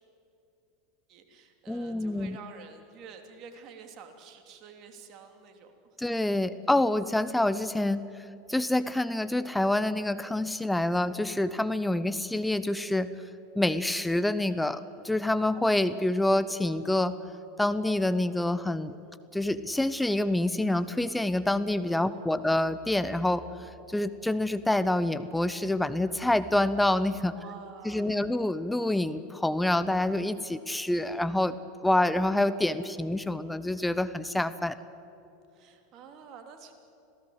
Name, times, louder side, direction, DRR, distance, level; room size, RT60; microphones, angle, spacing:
voice 1, 1.1-5.7 18.8-19.2 21.9-22.5 27.3-28.2 35.5-36.7, right 6 dB, 50° right, 5 dB, 3.3 m, -49 dB
voice 2, 1.7-2.4 6.0-8.0 8.5-13.1 13.6-17.1 17.6-18.9 19.3-23.4 23.9-27.3 27.8-31.6 31.8-34.8, left 1 dB, 5° left, 13 dB, 0.9 m, -27 dB
27.0 x 17.5 x 8.1 m, 2.8 s
hypercardioid pair, 90°, 0 cm